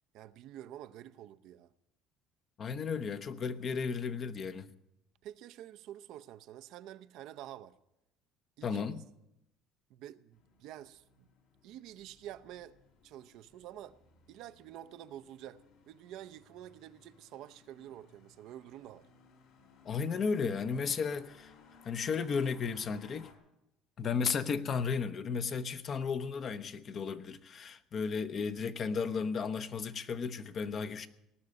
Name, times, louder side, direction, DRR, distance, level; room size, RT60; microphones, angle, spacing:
voice 1, 0.1-1.7 5.2-7.8 8.6-9.0 9.9-11.3 11.6-12.8 13.0-14.0 14.3-19.1, right 12 dB, 65° right, 0.6 m, -48 dB
voice 2, 2.6-4.7 8.6-9.0 19.8-21.5 21.8-23.3 24.0-31.1, left 5 dB, 40° left, 0.9 m, -34 dB
sound 1, 10.3-23.3, left 4 dB, 70° left, 3.3 m, -62 dB
18.5 x 6.7 x 9.6 m
cardioid pair, 120°, 0 cm